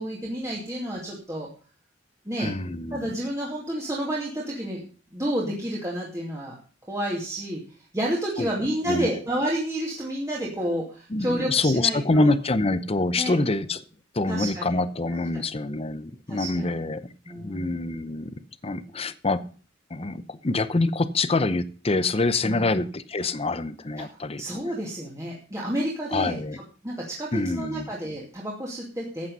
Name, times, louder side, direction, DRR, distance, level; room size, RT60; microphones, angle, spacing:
voice 1, 0.0-1.5 2.3-2.5 2.9-4.8 5.1-6.5 6.9-7.6 7.9-12.3 13.2-13.3 14.3-14.7 15.3-15.4 16.3-16.7 17.3-17.7 22.4-22.6 24.0-24.1 24.4-26.4 26.8-29.3, right 1 dB, 15° right, -4 dB, 2.5 m, -30 dB
voice 2, 2.4-3.1 8.4-9.1 11.1-13.8 14.1-19.5 19.9-24.4 26.1-26.6 27.3-27.9, left 2 dB, 30° left, 14 dB, 0.8 m, -26 dB
13.5 x 8.8 x 5.5 m, 0.38 s
head